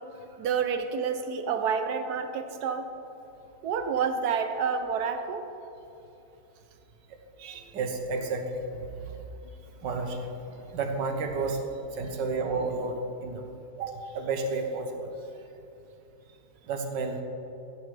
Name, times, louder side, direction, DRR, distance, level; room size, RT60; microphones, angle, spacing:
voice 1, 0.4-2.9 3.6-5.5, right 6 dB, 65° right, 7 dB, 1.3 m, -29 dB
voice 2, 7.4-8.8 9.1-9.2 9.8-11.6 11.9-13.5 13.8-15.1 16.6-17.2, right 3 dB, 90° right, 4 dB, 1.7 m, -32 dB
14.0 x 10.0 x 3.4 m, 2.9 s
omnidirectional pair, 1.9 m